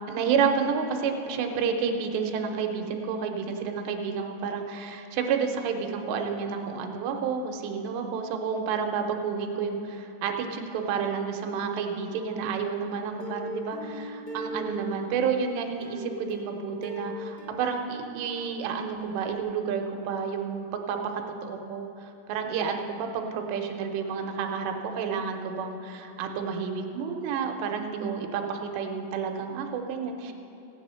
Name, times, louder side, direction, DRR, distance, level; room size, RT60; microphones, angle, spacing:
voice 1, 0.1-21.0 21.4-30.3, right 6 dB, 85° right, 4 dB, 3.1 m, -30 dB
Plucked string instrument, 13.2-15.2 15.8-18.6 18.9-19.0 19.4-19.5, equal, 30° left, 2.1 m, -39 dB
16.5 x 8.5 x 5.6 m, 2.8 s
omnidirectional pair, 4.9 m